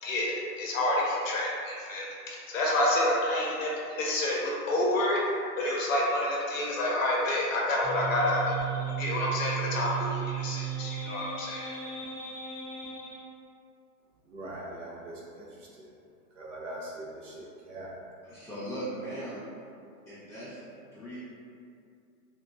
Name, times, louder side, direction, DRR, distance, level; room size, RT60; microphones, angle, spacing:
voice 1, 0.0-5.2 5.6-8.6 9.0-11.7, left 1 dB, 55° left, -3 dB, 0.7 m, -28 dB
sound 1, 7.8-13.2, right 7 dB, 10° right, 0.4 m, -35 dB
voice 2, 14.3-15.5 15.8-15.9 16.4-17.9, right 1 dB, 50° right, -4 dB, 0.6 m, -41 dB
voice 3, 18.2-19.4 20.1-21.2, right 1 dB, 5° left, -14 dB, 1.0 m, -39 dB
3.7 x 2.2 x 2.5 m, 2.4 s
hypercardioid pair, 165°, 47 cm